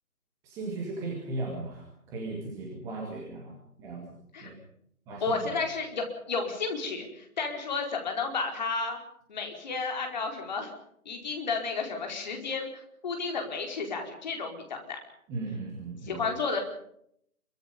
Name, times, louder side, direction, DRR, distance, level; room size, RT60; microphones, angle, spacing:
voice 1, 0.4-4.6 5.1-5.5 15.3-16.3, right 2 dB, 5° right, -2 dB, 2.2 m, -37 dB
voice 2, 5.2-9.0 9.3-10.7 11.0-12.7 13.0-15.0 16.1-16.6, left 4 dB, 30° left, 3 dB, 4.8 m, -32 dB
24.5 x 24.0 x 5.4 m, 0.70 s
figure-of-eight pair, 160°, 44 cm